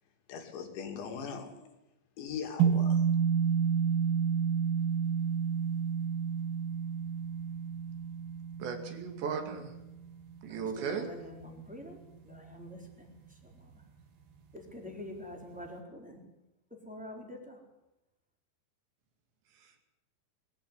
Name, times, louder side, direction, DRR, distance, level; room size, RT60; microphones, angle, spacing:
voice 1, 0.3-1.7 2.2-3.1, left 6 dB, 85° left, 4 dB, 5.0 m, -40 dB
sound 1, 2.6-11.0, right 7 dB, 60° right, 3.8 m, -30 dB
voice 2, 8.6-9.7 10.4-11.1, right 6 dB, 75° right, 5 dB, 4.7 m, -36 dB
voice 3, 10.5-12.0 12.2-13.1 13.4-13.5 14.5-16.2 16.8-17.6, left 1 dB, ahead, 0 dB, 3.3 m, -46 dB
22.0 x 14.5 x 9.8 m, 0.92 s
omnidirectional pair, 5.1 m